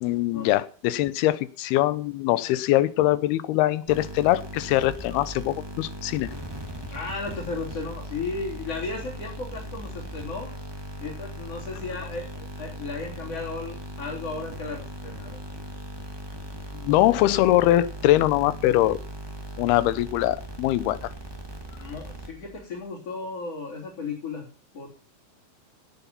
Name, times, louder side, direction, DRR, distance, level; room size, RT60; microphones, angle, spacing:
voice 1, 0.0-6.3 16.7-19.0 19.6-21.1, left 15 dB, 85° left, 16 dB, 2.8 m, -22 dB
sound 1, 3.9-22.7, equal, 10° right, 1.5 m, -39 dB
voice 2, 6.9-10.5 11.0-15.4 16.9-17.2 21.7-24.5 24.7-24.9, left 3 dB, 40° left, 0 dB, 4.4 m, -35 dB
17.5 x 8.1 x 5.6 m, 0.39 s
omnidirectional pair, 4.4 m